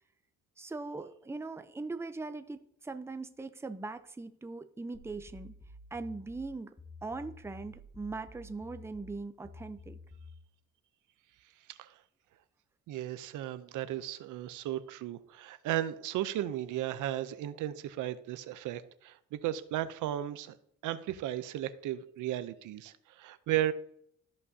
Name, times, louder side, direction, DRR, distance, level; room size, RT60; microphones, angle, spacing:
voice 1, 0.6-5.5 5.9-6.7 7.0-10.0, right 3 dB, 10° right, 9 dB, 0.6 m, -40 dB
sound 1, 4.9-10.4, left 2 dB, 15° left, 1.4 m, -51 dB
voice 2, 12.9-20.6 20.8-23.7, right 13 dB, 85° right, 12 dB, 0.6 m, -35 dB
13.5 x 5.4 x 2.7 m, 0.68 s
cardioid pair, 90°, 30 cm